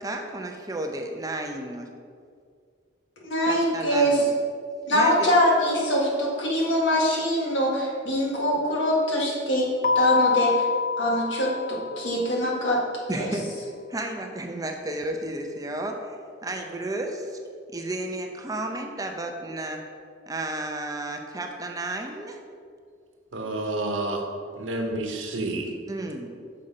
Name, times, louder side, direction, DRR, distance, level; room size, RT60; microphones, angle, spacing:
voice 1, 0.0-1.9 3.4-4.4 4.9-5.3 13.1-13.5 13.9-16.2 16.4-17.2 17.7-19.8 20.3-22.4 25.9-26.4, right 2 dB, 20° right, 3 dB, 0.6 m, -32 dB
voice 2, 3.3-4.2 4.8-7.7 8.1-9.7 9.9-10.6 11.0-11.5 12.0-12.8 13.1-13.3, equal, 75° left, -3 dB, 1.9 m, -23 dB
Keyboard (musical), 9.8-12.4, left 5 dB, 50° left, 0.5 m, -25 dB
voice 3, 23.3-24.2 24.6-25.7, right 2 dB, 80° right, 2 dB, 1.1 m, -29 dB
6.5 x 4.9 x 5.7 m, 2.2 s
head